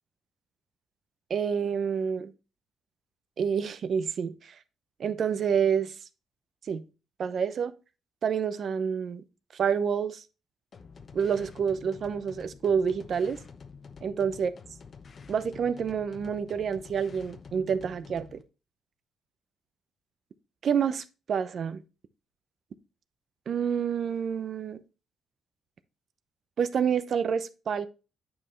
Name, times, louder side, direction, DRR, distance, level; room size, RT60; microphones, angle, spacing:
voice 1, 1.3-2.3 3.4-4.6 5.0-5.9 6.7-6.8 7.2-7.7 8.2-9.2 9.5-10.2 11.1-13.4 14.0-14.5 15.3-18.4 20.6-21.8 23.5-24.8 26.6-27.9, right 7 dB, 55° right, 0.7 m, -28 dB
sound 1, 10.7-18.4, left 5 dB, 45° left, 0.9 m, -48 dB
9.0 x 5.6 x 3.2 m
cardioid pair, 90°, 0 cm